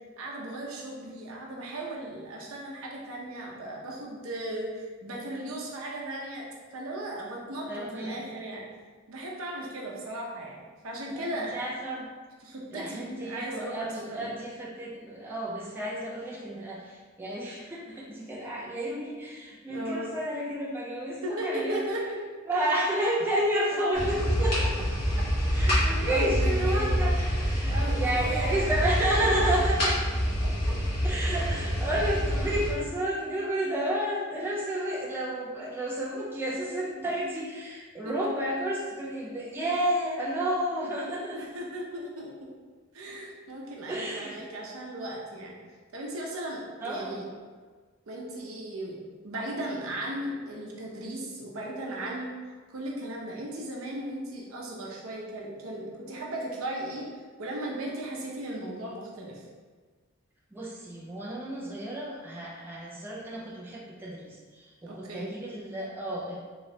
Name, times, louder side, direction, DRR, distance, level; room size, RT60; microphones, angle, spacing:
voice 1, 0.2-6.5 6.7-8.6 9.1-10.6 10.8-11.6 12.4-14.3 19.7-20.2 21.2-22.2 26.1-26.9 27.2-27.4 27.7-28.7 38.0-38.4 41.3-42.5 42.9-45.5 45.9-47.2 48.1-49.0 49.2-52.3 52.7-57.1 57.4-59.5 64.9-65.3, right 1 dB, 75° right, -2 dB, 0.7 m, -36 dB
voice 2, 7.7-8.2 11.1-12.1 12.7-21.8 22.5-24.9 25.5-30.0 31.0-41.4 43.9-44.4 46.8-47.2 60.5-66.4, right 1 dB, 10° right, -5 dB, 0.4 m, -31 dB
sound 1, 23.9-32.7, equal, 45° left, 1.3 m, -27 dB
3.1 x 3.0 x 2.7 m, 1.5 s
head